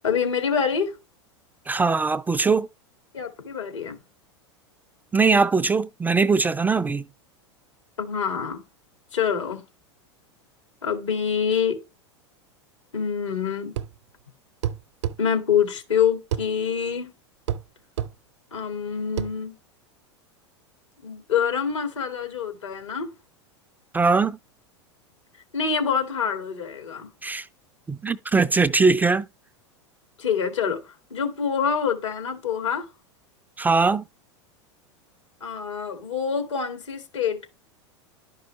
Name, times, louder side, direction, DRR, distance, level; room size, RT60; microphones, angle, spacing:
voice 1, 0.0-0.9 3.1-4.0 8.0-8.6 9.1-9.6 10.8-11.8 12.9-13.7 15.2-17.1 18.5-19.5 21.0-23.1 25.5-27.1 30.2-32.9 35.4-37.5, left 7 dB, 80° left, 2.1 m, -26 dB
voice 2, 1.7-2.7 5.1-7.1 23.9-24.4 27.2-27.5 27.9-29.2 33.6-34.0, right 4 dB, 10° right, 0.3 m, -21 dB
sound 1, 13.8-14.0 14.6-15.2 16.3-16.5 17.5-17.7 18.0-18.1 19.2-19.3, right 10 dB, 70° right, 0.6 m, -27 dB
11.5 x 5.3 x 3.1 m
hypercardioid pair, 95°, 15 cm